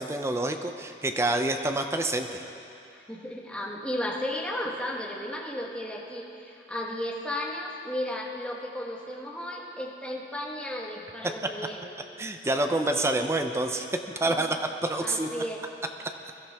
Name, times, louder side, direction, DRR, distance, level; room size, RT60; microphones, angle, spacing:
voice 1, 0.0-2.4 12.2-13.9 14.2-14.6 14.8-15.3, right 2 dB, 15° right, 5 dB, 0.6 m, -27 dB
voice 2, 2.9-11.9 14.2-14.5 15.0-15.6, left 1 dB, 5° left, -3 dB, 1.5 m, -34 dB
21.5 x 13.0 x 3.6 m, 2.8 s
head